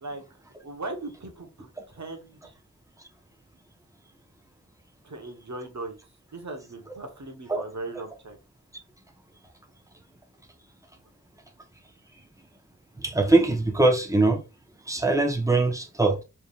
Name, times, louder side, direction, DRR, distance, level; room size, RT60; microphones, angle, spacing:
voice 1, 0.6-2.5 5.0-6.0 6.3-8.4, right 2 dB, 65° right, 1.3 m, -38 dB
voice 2, 13.0-14.4 14.9-16.2, right 2 dB, 10° right, 1.1 m, -22 dB
5.1 x 3.5 x 2.5 m
wide cardioid pair, 55°, 31 cm